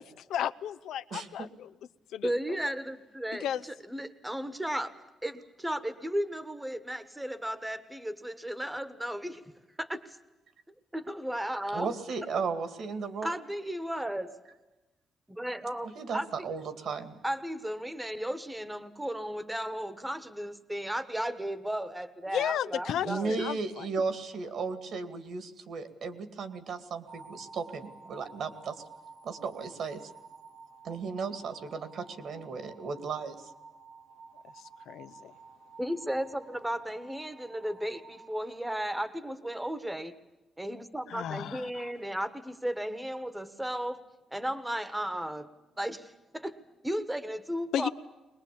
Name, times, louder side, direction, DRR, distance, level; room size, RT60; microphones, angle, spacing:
voice 1, 0.0-1.7 2.1-2.3 2.6-2.7 3.4-3.6 22.3-23.9 34.6-35.3 41.1-41.9 47.7-47.9, left 10 dB, 75° left, 12 dB, 0.7 m, -34 dB
voice 2, 2.2-3.5 3.9-9.4 9.8-10.2 10.9-11.9 13.2-14.3 15.3-16.3 17.2-23.4 35.8-40.1 40.6-44.0 44.3-45.5 45.8-46.6 46.8-47.9, equal, 5° right, 13 dB, 1.3 m, -34 dB
voice 3, 11.7-13.4 16.0-17.1 23.0-28.8 29.2-30.0 30.8-33.5, right 5 dB, 60° right, 11 dB, 2.3 m, -35 dB
sound 1, 27.1-39.2, right 4 dB, 85° right, 4.7 m, -52 dB
22.5 x 21.0 x 8.6 m, 1.0 s
cardioid pair, 140°, 0 cm